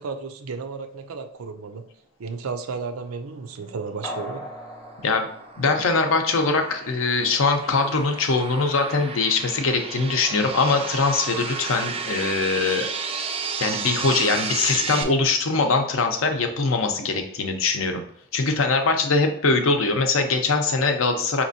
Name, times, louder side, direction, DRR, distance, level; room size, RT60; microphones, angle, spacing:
voice 1, 0.0-1.8 2.2-4.5, right 4 dB, 80° right, 8 dB, 0.5 m, -33 dB
sound 1, 4.0-6.6 7.0-7.1, equal, 15° left, 0.7 m, -39 dB
sound 2, 4.4-15.0, right 5 dB, 25° right, 0.4 m, -33 dB
voice 2, 5.6-12.9 13.6-18.0 18.3-21.4, left 3 dB, 70° left, 5 dB, 0.6 m, -22 dB
5.0 x 2.9 x 2.7 m, 0.67 s
head